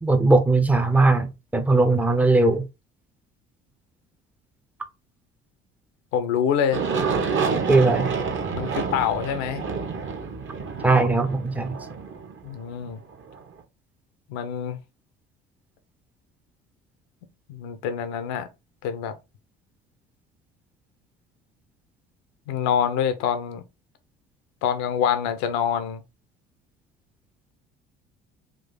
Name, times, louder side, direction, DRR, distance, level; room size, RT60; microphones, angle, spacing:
voice 1, 0.0-2.7 7.7-8.1 10.8-11.8, right 3 dB, 5° right, 0.7 m, -19 dB
voice 2, 6.1-6.8 8.5-9.6 12.4-13.0 14.3-14.8 17.5-18.5 18.8-19.2 22.5-23.6 24.6-26.0, left 8 dB, 60° left, 0.7 m, -25 dB
Aircraft, 6.7-13.4, right 5 dB, 40° right, 1.1 m, -28 dB
3.7 x 2.7 x 3.9 m
figure-of-eight pair, 55°, 31 cm